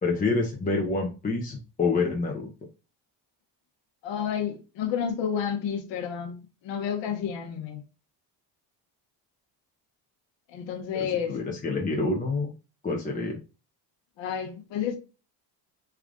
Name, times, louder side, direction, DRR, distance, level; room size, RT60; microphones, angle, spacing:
voice 1, 0.0-2.5 11.0-12.5 12.8-13.3, left 3 dB, 15° left, 0.6 m, -27 dB
voice 2, 4.0-7.8 10.5-11.4 14.2-15.0, left 8 dB, 65° left, 1.0 m, -30 dB
3.4 x 2.4 x 3.7 m
cardioid pair, 100°, 48 cm